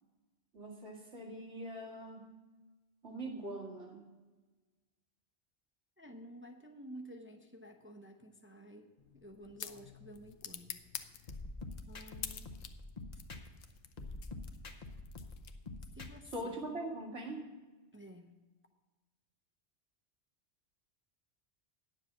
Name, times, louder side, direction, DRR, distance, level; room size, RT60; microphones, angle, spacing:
voice 1, 0.5-2.3 3.0-4.1 16.3-17.5, right 1 dB, 90° right, -1 dB, 2.2 m, -42 dB
voice 2, 6.0-10.8 11.9-12.5 15.9-16.5 17.9-18.3, equal, 15° right, 3 dB, 0.7 m, -52 dB
sound 1, 9.0-15.9, left 9 dB, 85° left, 1.0 m, -49 dB
sound 2, 11.3-13.6 14.0-16.3, left 2 dB, 40° left, 0.9 m, -46 dB
9.6 x 7.3 x 7.2 m, 1.2 s
omnidirectional pair, 1.1 m